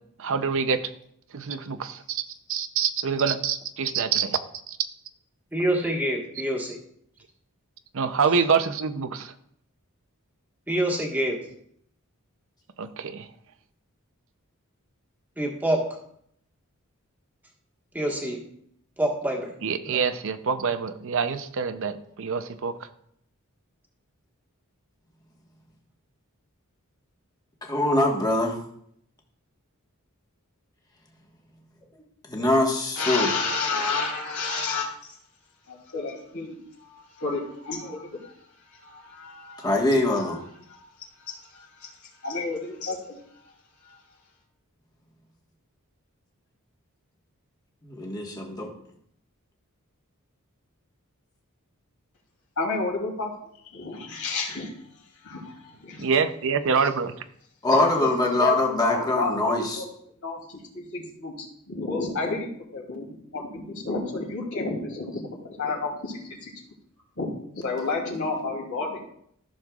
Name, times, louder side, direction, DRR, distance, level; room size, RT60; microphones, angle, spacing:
voice 1, 0.2-0.9 1.3-2.2 2.5-4.4 4.7-4.8 7.9-9.3 12.8-13.3 19.6-22.8 56.0-57.1, right 6 dB, 65° right, 10 dB, 0.6 m, -26 dB
voice 2, 5.5-6.8 10.7-11.4 15.4-16.0 17.9-18.4 19.0-19.5 19.9-20.0, right 1 dB, 10° right, -1 dB, 1.5 m, -26 dB
voice 3, 27.6-28.6 32.3-33.3 39.6-40.4 47.8-48.7 57.6-59.8, left 2 dB, 20° left, -1 dB, 1.4 m, -23 dB
voice 4, 33.0-35.2 35.7-38.3 38.7-39.8 40.7-40.9 41.2-41.9 42.2-43.2 43.9-44.0 52.6-53.3 53.7-54.7 55.2-56.2 56.8-56.9 57.7-59.8 60.2-66.5 67.2-69.0, left 3 dB, 70° left, -2 dB, 2.8 m, -31 dB
14.0 x 6.5 x 2.4 m, 0.69 s
head